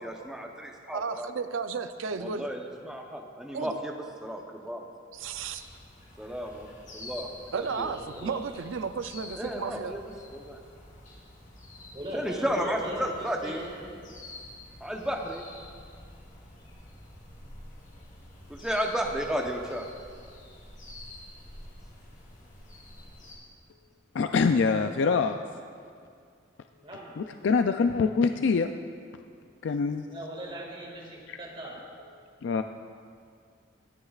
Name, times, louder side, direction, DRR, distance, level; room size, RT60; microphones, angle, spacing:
voice 1, 0.0-1.3 2.2-3.9 4.2-4.8 6.2-7.9 9.4-10.0 10.3-10.6 12.1-13.7 14.8-15.4 18.5-19.9, equal, 5° right, 1 dB, 0.8 m, -33 dB
voice 2, 0.9-2.5 3.5-3.8 5.2-5.6 7.5-9.9, right 5 dB, 75° right, 10 dB, 0.5 m, -33 dB
sound 1, 5.1-23.4, left 1 dB, 40° left, 2.8 m, -48 dB
voice 3, 7.7-8.4 11.9-14.0 26.8-27.1 30.1-31.8, right 1 dB, 25° right, -3 dB, 2.1 m, -40 dB
voice 4, 24.1-25.4 27.2-28.7 29.6-30.1 31.3-31.4 32.4-32.6, left 5 dB, 65° left, 7 dB, 0.3 m, -24 dB
24.0 x 9.7 x 2.4 m, 2.3 s
head